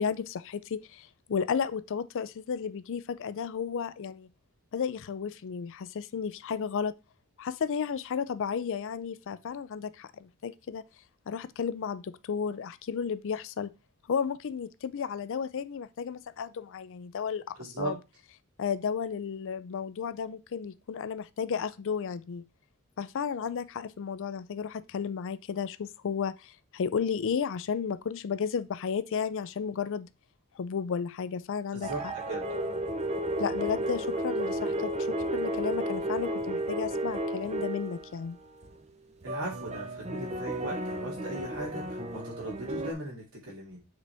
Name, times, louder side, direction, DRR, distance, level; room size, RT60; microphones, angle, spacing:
voice 1, 0.0-4.3 4.7-6.9 7.4-10.8 11.3-13.7 14.1-18.0 18.6-22.4 23.0-30.1 30.6-32.1 33.4-38.4, left 6 dB, 60° left, 0.4 m, -33 dB
voice 2, 17.6-17.9 31.7-32.0 32.3-32.5 39.2-43.8, right 2 dB, 75° right, 2.6 m, -38 dB
sound 1, 31.8-38.1 38.5-38.7 39.2-42.9, right 1 dB, 30° right, 0.7 m, -33 dB
7.4 x 4.0 x 3.4 m
head